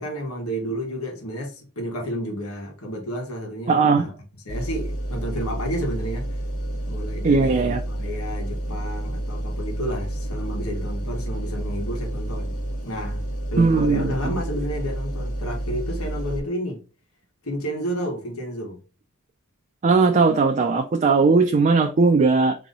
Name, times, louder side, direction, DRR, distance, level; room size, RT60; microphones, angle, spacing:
voice 1, 0.0-4.1 4.4-6.3 6.9-13.2 13.5-16.8 17.4-18.8, equal, 80° left, 1.4 m, -31 dB
voice 2, 3.7-4.0 7.2-7.8 13.6-14.4 19.8-22.5, right 4 dB, 35° right, 0.4 m, -18 dB
sound 1, 4.5-16.4, right 1 dB, 40° left, 0.9 m, -30 dB
3.8 x 3.0 x 3.9 m
head